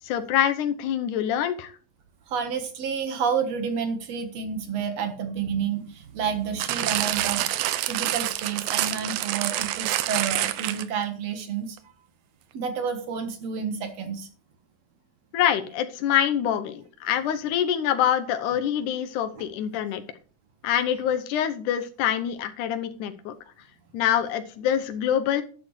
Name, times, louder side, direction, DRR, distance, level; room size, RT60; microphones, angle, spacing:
voice 1, 0.0-1.7 15.3-20.0 20.6-23.4 23.9-25.4, left 10 dB, 75° left, 9 dB, 2.3 m, -25 dB
voice 2, 2.3-7.5 7.9-11.8 12.5-14.3, right 6 dB, 60° right, 7 dB, 2.3 m, -30 dB
Plastic bag sqeezed, 6.6-11.0 11.8-11.9, right 14 dB, 90° right, 2.4 m, -27 dB
12.0 x 10.5 x 3.2 m, 0.40 s
omnidirectional pair, 3.8 m